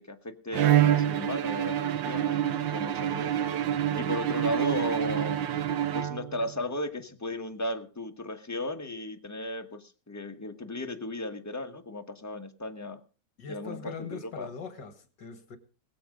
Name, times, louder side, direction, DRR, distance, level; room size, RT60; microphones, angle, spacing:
voice 1, 0.0-3.5 4.0-5.4 5.9-13.0 13.5-14.5, left 1 dB, 10° left, 1.1 m, -35 dB
Bowed string instrument, 0.5-6.5, right 11 dB, 80° right, 1.6 m, -27 dB
voice 2, 13.4-15.6, left 5 dB, 65° left, 2.4 m, -41 dB
21.0 x 7.8 x 5.3 m
omnidirectional pair, 2.1 m